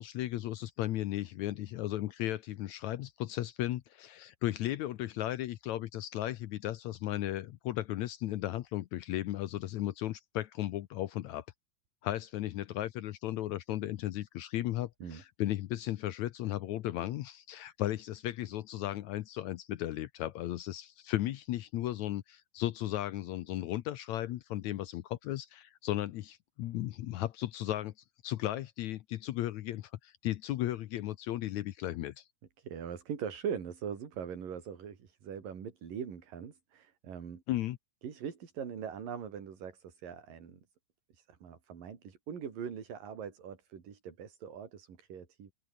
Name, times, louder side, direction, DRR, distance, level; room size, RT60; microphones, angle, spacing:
voice 1, 0.0-11.4 12.0-27.9 28.2-32.2 37.5-37.8, left 14 dB, 75° left, 1.7 m, -35 dB
voice 2, 32.6-37.4 38.0-40.6 41.1-45.5, right 7 dB, 70° right, 4.9 m, -41 dB
open air
omnidirectional pair, 4.1 m